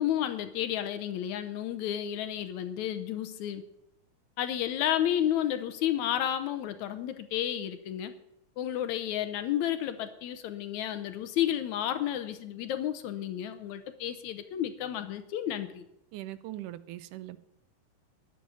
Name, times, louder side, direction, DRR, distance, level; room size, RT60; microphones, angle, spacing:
voice 1, 0.0-3.6 4.4-8.1 8.6-15.8, left 11 dB, 75° left, 10 dB, 2.0 m, -31 dB
voice 2, 16.1-17.4, right 14 dB, 85° right, 14 dB, 2.2 m, -40 dB
11.0 x 7.8 x 9.7 m, 0.82 s
omnidirectional pair, 3.6 m